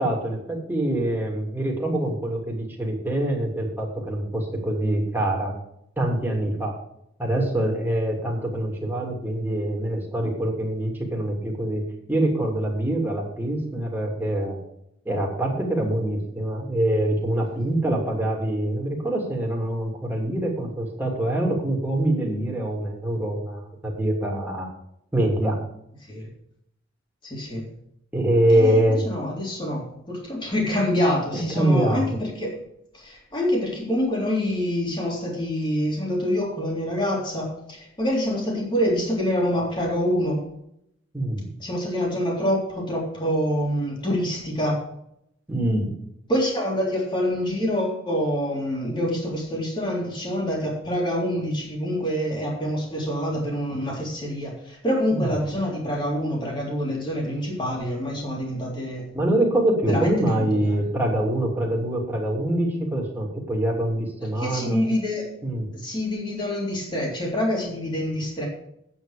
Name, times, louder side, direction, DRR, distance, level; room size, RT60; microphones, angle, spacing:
voice 1, 0.0-5.5 6.0-6.7 7.2-11.8 12.1-14.6 15.0-24.7 25.1-25.6 28.1-29.0 31.5-32.0 41.1-41.5 45.5-46.0 55.1-55.4 59.1-64.8 65.4-65.7, right 1 dB, 10° right, -2 dB, 2.8 m, -24 dB
voice 2, 27.2-27.6 28.5-32.6 32.9-40.5 41.6-44.8 46.3-59.0 59.8-60.1 60.4-60.5 64.4-65.4 65.7-68.5, equal, 25° left, -2 dB, 3.5 m, -26 dB
9.9 x 8.8 x 5.0 m, 0.75 s
head